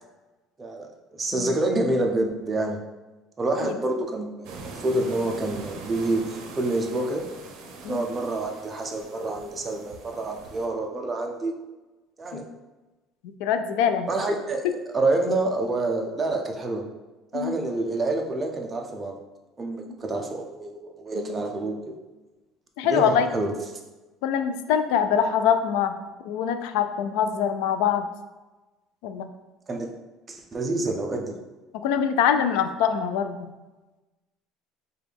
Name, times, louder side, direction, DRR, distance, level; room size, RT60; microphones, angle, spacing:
voice 1, 0.6-2.8 3.4-4.6 4.8-7.3 7.9-11.5 12.2-12.5 14.1-16.8 17.3-19.2 19.6-21.9 22.8-23.5 29.7-29.9 30.3-31.4, right 2 dB, 15° right, 2 dB, 0.4 m, -27 dB
sound 1, 4.4-10.7, right 3 dB, 60° right, 0.6 m, -42 dB
voice 2, 13.2-14.1 17.3-17.6 21.2-21.4 22.8-23.3 24.2-25.9 26.2-28.1 29.0-29.3 31.8-33.5, left 8 dB, 85° left, 9 dB, 0.3 m, -24 dB
5.0 x 2.3 x 3.3 m, 1.1 s
cardioid pair, 170°, 0 cm